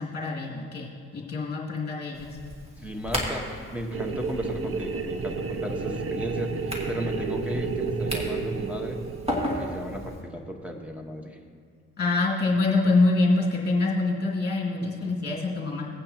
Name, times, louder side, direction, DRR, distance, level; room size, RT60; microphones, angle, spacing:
voice 1, 0.0-2.4 12.0-15.9, left 3 dB, 35° left, -3 dB, 2.5 m, -25 dB
sound 1, 2.1-10.2, equal, 20° right, 2.3 m, -36 dB
voice 2, 2.8-9.0 9.5-11.4 14.8-14.9, equal, 5° right, 2 dB, 1.3 m, -35 dB
sound 2, 3.9-9.7, right 4 dB, 45° right, 0.7 m, -31 dB
17.5 x 8.9 x 3.0 m, 2.1 s
cardioid pair, 90°, 30 cm